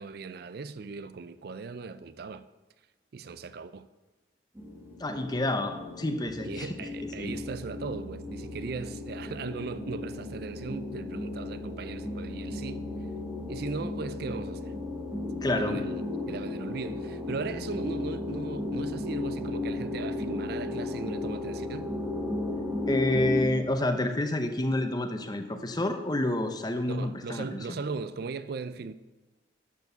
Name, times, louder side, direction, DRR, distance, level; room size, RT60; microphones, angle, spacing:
voice 1, 0.0-2.4 3.1-3.9 6.4-12.9 13.5-14.7 15.5-16.0 16.3-21.9 26.8-28.9, right 4 dB, 55° right, 0.4 m, -38 dB
sound 1, 4.6-23.4, left 2 dB, 15° right, 1.5 m, -35 dB
voice 2, 5.0-6.9 7.2-7.3 15.4-15.8 22.9-27.7, left 1 dB, 20° left, 0.8 m, -29 dB
12.0 x 4.7 x 6.7 m
head